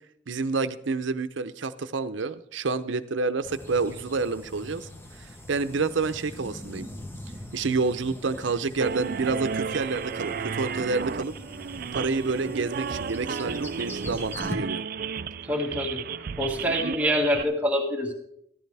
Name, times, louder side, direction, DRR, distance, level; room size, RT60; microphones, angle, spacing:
voice 1, 0.3-4.9 5.2-6.9 7.5-11.3 11.9-14.8, right 4 dB, 80° right, 12 dB, 0.7 m, -28 dB
sound 1, 3.4-14.6, left 1 dB, 10° left, 0.9 m, -42 dB
sound 2, 8.8-17.4, right 6 dB, 50° right, 0.4 m, -33 dB
voice 2, 15.4-18.1, equal, 10° right, -1 dB, 1.9 m, -26 dB
14.0 x 13.0 x 3.4 m, 0.73 s
head